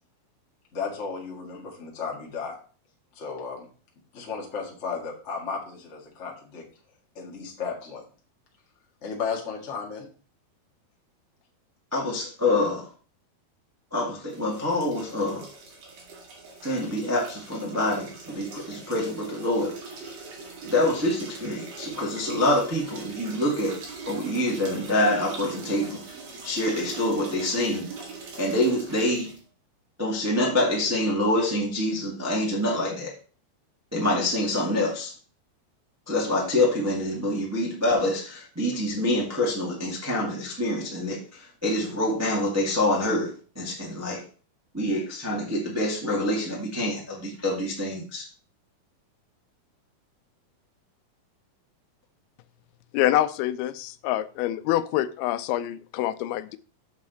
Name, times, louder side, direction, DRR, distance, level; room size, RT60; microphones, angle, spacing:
voice 1, 0.7-2.5 3.1-3.7 4.1-6.6 7.1-8.0 9.0-10.1, left 5 dB, 40° left, -1 dB, 1.0 m, -34 dB
voice 2, 11.9-12.9 13.9-15.5 16.6-19.8 20.6-26.0 26.4-27.9 28.4-29.3 30.0-33.1 33.9-35.1 36.1-44.2 44.7-48.3, left 1 dB, 15° right, -4 dB, 0.5 m, -26 dB
sound 1, 14.3-29.4, right 4 dB, 65° right, 3.6 m, -41 dB
voice 3, 52.9-56.6, left 13 dB, 85° left, 14 dB, 2.5 m, -26 dB
7.1 x 6.6 x 4.0 m, 0.39 s
omnidirectional pair, 4.4 m